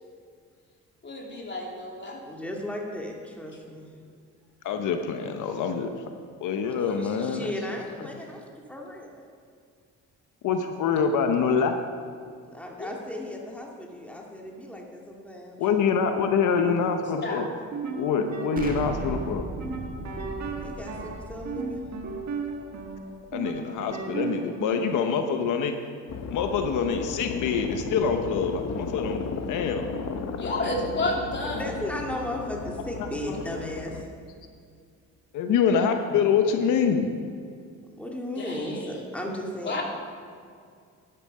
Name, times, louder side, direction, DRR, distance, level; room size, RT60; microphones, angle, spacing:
voice 1, 1.0-2.2 12.8-12.9 17.2-17.4 30.4-31.6 38.4-39.0 39.6-39.8, left 2 dB, 40° left, -1 dB, 3.0 m, -31 dB
voice 2, 2.2-3.9 6.6-9.2 12.5-16.0 20.6-21.9 31.4-34.1 38.0-39.8, left 1 dB, 5° left, -1 dB, 2.4 m, -36 dB
voice 3, 4.6-6.1 6.4-7.5 10.4-11.7 15.6-17.4 17.9-19.4 23.3-25.7 26.3-29.9 33.3-33.4 35.3-37.1, left 6 dB, 85° left, 6 dB, 1.0 m, -25 dB
sound 1, 17.6-25.1, right 4 dB, 60° right, 1.7 m, -35 dB
Explosion, 18.6-23.4, right 2 dB, 30° right, 2.1 m, -38 dB
sound 2, 26.1-34.0, left 4 dB, 60° left, 1.0 m, -35 dB
12.5 x 11.0 x 5.5 m, 2.2 s
cardioid pair, 90°, 30 cm